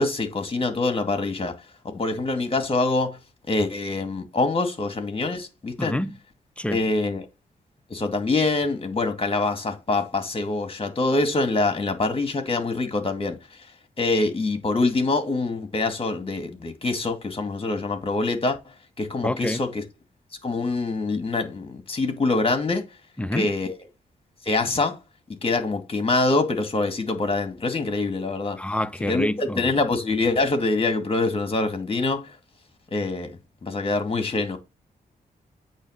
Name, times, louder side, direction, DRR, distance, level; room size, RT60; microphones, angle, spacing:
voice 1, 0.0-1.6 1.9-3.2 3.5-5.9 6.7-7.3 7.9-13.4 14.0-18.6 19.0-19.8 20.4-22.9 23.3-23.8 24.4-25.0 25.4-28.6 29.1-32.3 32.9-34.6, left 3 dB, 35° left, 2.1 m, -25 dB
voice 2, 5.8-6.2 6.6-6.8 19.2-19.6 23.2-23.5 28.6-29.7, left 1 dB, 5° left, 0.6 m, -27 dB
8.5 x 3.2 x 6.4 m
cardioid pair, 60°, 16 cm